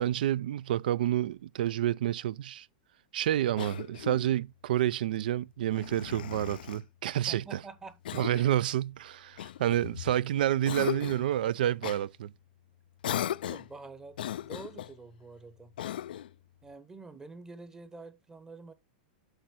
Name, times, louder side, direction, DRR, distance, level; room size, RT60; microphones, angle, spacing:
voice 1, 0.0-2.7 3.1-7.4 8.1-12.3, right 12 dB, 75° right, 0.4 m, -29 dB
Cough, 3.6-4.3 5.7-6.8 8.0-8.6 9.4-10.2 10.6-11.3 11.8-12.0 13.0-13.7 14.1-14.9 15.8-16.3, left 11 dB, 85° left, 0.3 m, -37 dB
voice 2, 7.3-8.0 13.4-15.8 16.6-18.7, right 3 dB, 10° right, 0.8 m, -47 dB
8.0 x 3.2 x 6.1 m
hypercardioid pair, 135°, 5 cm